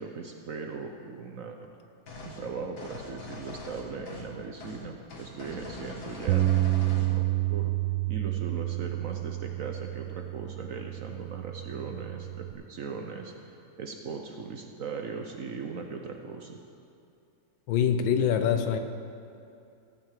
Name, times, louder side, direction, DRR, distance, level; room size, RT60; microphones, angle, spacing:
voice 1, 0.0-1.6 2.2-7.2 7.5-7.7 8.1-16.6, right 5 dB, 60° right, 3 dB, 0.9 m, -39 dB
sound 1, 2.1-2.4 2.8-4.3 4.6-4.8 5.1-7.1, left 2 dB, 55° left, 2.1 m, -42 dB
Bass guitar, 6.3-12.5, right 17 dB, 80° right, 1.3 m, -29 dB
voice 2, 17.7-18.8, left 8 dB, 85° left, 8 dB, 1.5 m, -24 dB
16.5 x 6.0 x 7.5 m, 2.5 s
omnidirectional pair, 2.1 m